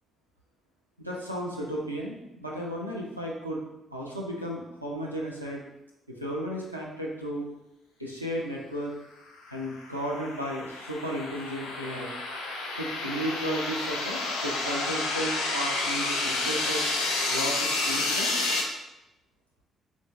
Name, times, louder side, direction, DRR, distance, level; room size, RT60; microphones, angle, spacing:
voice 1, 1.0-3.6 3.9-5.6 6.1-7.5 8.0-8.9 9.5-12.1 12.7-16.9 17.3-18.4, equal, 90° right, -3 dB, 0.4 m, -34 dB
sound 1, 9.6-18.6, left 2 dB, 75° left, 0.4 m, -30 dB
3.8 x 2.1 x 3.1 m, 0.91 s
figure-of-eight pair, 45°, 0 cm